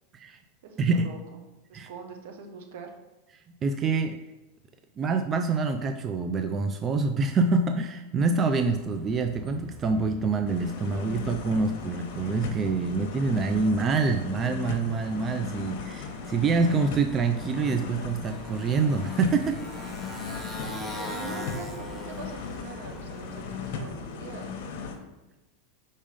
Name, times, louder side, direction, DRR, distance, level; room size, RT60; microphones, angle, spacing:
voice 1, 0.6-1.4 1.7-2.9 21.0-24.5, right 5 dB, 75° right, 4 dB, 1.0 m, -43 dB
voice 2, 3.6-4.2 5.0-19.6, right 4 dB, 30° right, 7 dB, 0.4 m, -26 dB
Motorcycle, 8.6-23.9, left 2 dB, 5° right, 1.1 m, -43 dB
sound 1, 10.5-25.0, left 5 dB, 65° left, 0.9 m, -37 dB
5.2 x 3.6 x 5.1 m, 1.1 s
hypercardioid pair, 115°, 0 cm